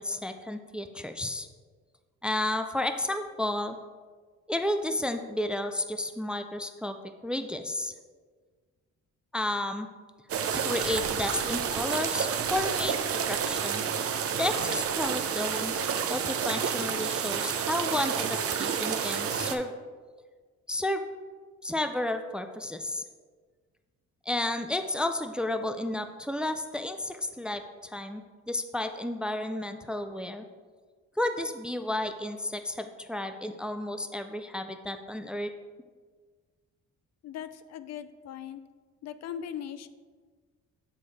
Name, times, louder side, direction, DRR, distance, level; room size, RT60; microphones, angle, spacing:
voice 1, 0.0-1.5 2.2-3.8 4.5-7.0 7.2-7.9 9.3-9.9 10.5-13.8 14.4-15.7 16.1-19.7 20.7-21.0 21.6-23.0 24.3-28.2 28.5-30.5 31.2-35.5, left 1 dB, 5° right, 8 dB, 0.4 m, -32 dB
sound 1, 10.3-19.5, right 7 dB, 50° right, 0.6 m, -30 dB
voice 2, 37.2-38.6 39.0-39.9, left 9 dB, 60° left, 12 dB, 0.4 m, -39 dB
6.8 x 4.9 x 4.1 m, 1.5 s
cardioid pair, 90°, 30 cm